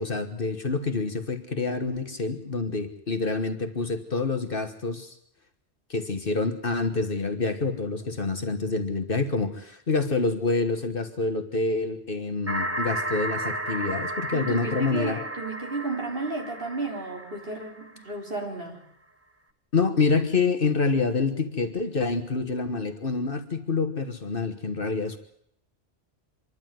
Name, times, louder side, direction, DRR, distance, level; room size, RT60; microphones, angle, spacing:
voice 1, 0.0-5.1 5.9-15.2 19.7-25.2, left 4 dB, 50° left, 8 dB, 1.6 m, -27 dB
sound 1, 12.5-18.2, right 1 dB, 10° right, 1.4 m, -33 dB
voice 2, 14.3-18.8, right 3 dB, 50° right, 0 dB, 4.3 m, -33 dB
26.0 x 11.5 x 9.3 m, 0.72 s
omnidirectional pair, 1.2 m